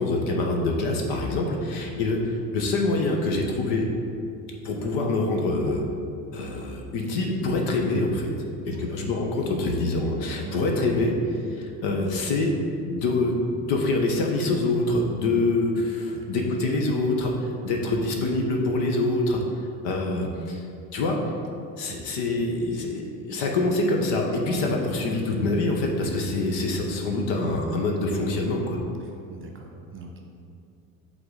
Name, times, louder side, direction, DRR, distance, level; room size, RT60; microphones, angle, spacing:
voice 1, 0.0-3.9 4.6-5.8 6.3-8.3 8.7-11.1 11.5-12.5 12.8-19.4 19.8-20.6 20.9-21.2 21.8-28.8, left 2 dB, 60° left, 1 dB, 1.2 m, -25 dB
voice 2, 29.0-30.2, right 5 dB, 25° right, 1 dB, 1.1 m, -42 dB
7.8 x 4.0 x 3.9 m, 2.5 s
hypercardioid pair, 70°, 48 cm